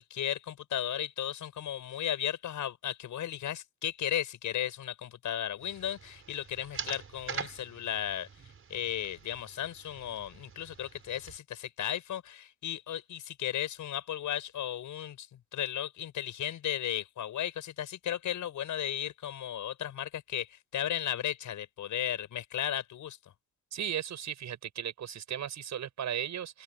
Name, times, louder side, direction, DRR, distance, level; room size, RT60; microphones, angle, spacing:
voice 1, 0.0-8.3 8.7-23.2, left 11 dB, 80° left, 6.1 m, -35 dB
sound 1, 5.6-11.4, right 6 dB, 45° right, 5.3 m, -44 dB
voice 2, 23.7-26.6, right 9 dB, 65° right, 7.3 m, -36 dB
open air
cardioid pair, 115°, 30 cm